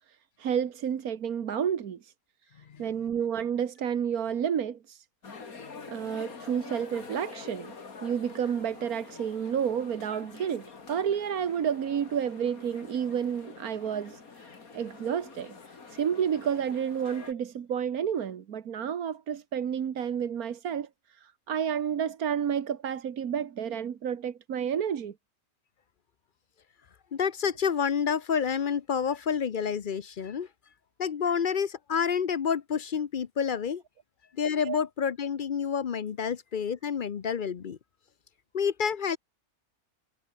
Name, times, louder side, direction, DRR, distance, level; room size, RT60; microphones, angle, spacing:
voice 1, 0.4-2.1 2.8-5.0 5.9-7.7 8.0-14.2 14.7-25.1 34.6-34.8, right 8 dB, 85° right, 1.7 m, -30 dB
sound 1, 5.2-17.3, left 4 dB, 80° left, 2.9 m, -46 dB
voice 2, 27.1-30.5 31.0-33.8 34.4-37.8 38.5-39.2, left 7 dB, 45° left, 0.7 m, -29 dB
omnidirectional pair, 1.5 m